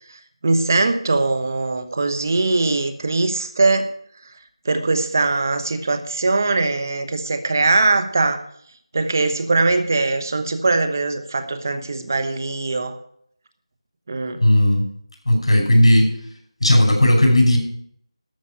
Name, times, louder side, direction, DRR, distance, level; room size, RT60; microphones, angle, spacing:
voice 1, 0.1-3.9 4.6-8.4 8.9-12.9 14.1-14.4, right 3 dB, 35° right, 8 dB, 1.1 m, -21 dB
voice 2, 14.4-14.9 15.3-16.1 16.6-17.6, left 1 dB, 65° left, 1 dB, 6.0 m, -15 dB
13.0 x 5.9 x 8.9 m, 0.67 s
figure-of-eight pair, 175°, 3 cm